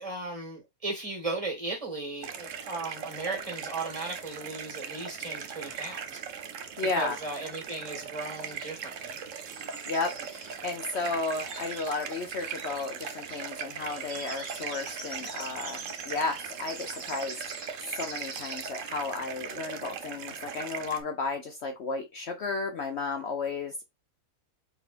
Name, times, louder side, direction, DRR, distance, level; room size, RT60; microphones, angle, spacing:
voice 1, 0.0-6.2 6.8-9.2, right 3 dB, 25° right, 1.9 m, -36 dB
sound 1, 2.2-21.0, right 7 dB, 65° right, 1.1 m, -39 dB
voice 2, 6.8-7.2 9.9-17.4 17.9-23.8, left 3 dB, 55° left, 0.9 m, -33 dB
sound 2, 8.2-18.7, right 3 dB, 50° right, 1.5 m, -45 dB
4.5 x 4.0 x 2.5 m
omnidirectional pair, 1.5 m